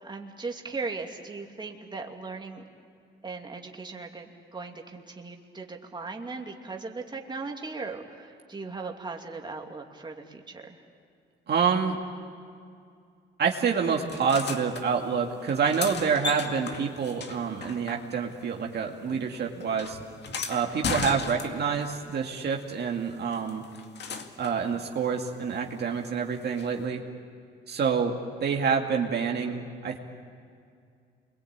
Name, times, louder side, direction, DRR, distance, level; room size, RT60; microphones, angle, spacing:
voice 1, 0.0-2.7 3.2-10.8, right 4 dB, 20° right, 1 dB, 2.7 m, -38 dB
voice 2, 11.5-12.0 13.4-20.0 20.5-23.6 24.4-27.0 27.7-28.1 28.4-30.0, right 6 dB, 55° right, 1 dB, 2.3 m, -27 dB
sound 1, 14.1-14.8 15.5-18.4 18.7-21.9 23.3-24.6 26.6-26.7, left 5 dB, 60° left, 2.2 m, -36 dB
28.5 x 23.0 x 8.9 m, 2.3 s
cardioid pair, 90°, 20 cm